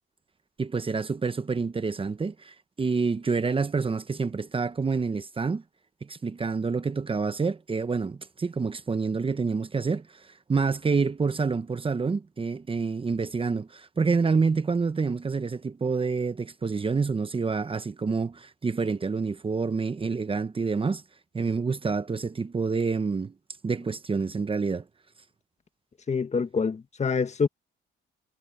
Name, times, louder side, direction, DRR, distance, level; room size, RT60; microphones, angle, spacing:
voice 1, 0.6-5.6 6.0-21.0 21.3-23.3 23.6-24.8, right 4 dB, 25° right, 1.0 m, -28 dB
voice 2, 26.1-27.5, left 5 dB, 35° left, 1.6 m, -26 dB
cardioid pair, 90°, 20 cm